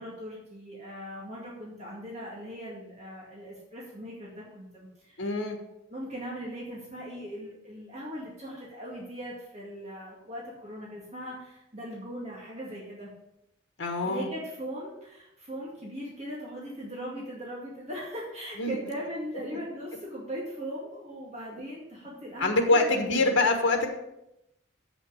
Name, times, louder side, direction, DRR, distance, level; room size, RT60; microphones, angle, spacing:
voice 1, 0.0-5.2 5.9-13.1 14.0-23.3, equal, 35° right, -4 dB, 2.2 m, -39 dB
voice 2, 5.2-5.6 13.8-14.3 18.6-18.8 22.4-23.9, left 2 dB, 85° left, 3 dB, 1.4 m, -24 dB
7.9 x 5.9 x 6.5 m, 0.85 s
head